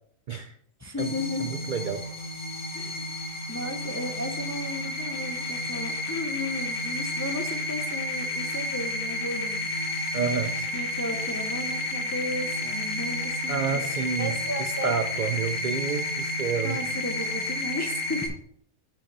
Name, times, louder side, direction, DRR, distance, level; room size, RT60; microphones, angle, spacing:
voice 1, 0.8-1.6 2.7-3.1 3.5-9.7 10.2-10.4 10.7-13.8 14.2-14.9 16.6-18.3, left 1 dB, 20° left, 4 dB, 0.5 m, -34 dB
sound 1, 1.0-18.3, left 1 dB, 60° left, 1.6 m, -31 dB
voice 2, 1.4-2.1 10.1-10.6 13.5-16.8, right 6 dB, 80° right, 8 dB, 0.4 m, -29 dB
6.9 x 5.7 x 5.3 m, 0.67 s
omnidirectional pair, 1.5 m